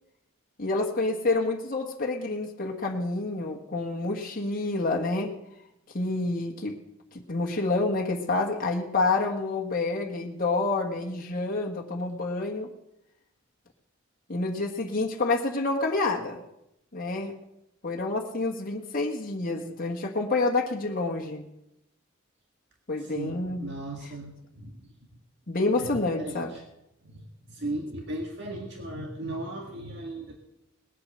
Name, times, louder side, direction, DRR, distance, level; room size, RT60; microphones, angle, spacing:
voice 1, 0.6-5.3 5.9-6.8 7.3-12.7 14.3-16.4 16.9-17.3 17.8-21.5 22.9-23.7 25.5-26.5, left 3 dB, 45° left, 0 dB, 1.5 m, -28 dB
voice 2, 23.0-24.9 25.8-26.6 27.0-30.3, right 1 dB, 60° right, 1 dB, 1.8 m, -37 dB
19.5 x 8.4 x 6.6 m, 0.85 s
head